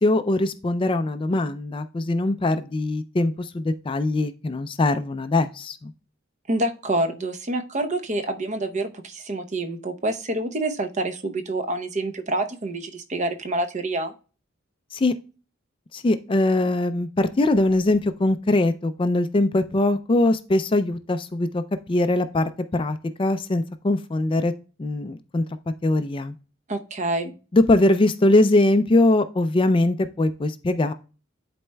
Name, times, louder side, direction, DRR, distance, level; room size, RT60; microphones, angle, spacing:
voice 1, 0.0-5.9 14.9-15.1 15.9-21.6 21.9-24.5 24.8-25.4 25.8-26.3 27.5-30.9, left 2 dB, 25° left, 10 dB, 0.4 m, -21 dB
voice 2, 6.5-14.1 26.7-27.3, right 2 dB, 40° right, 6 dB, 0.8 m, -27 dB
11.0 x 4.2 x 2.2 m, 0.35 s
head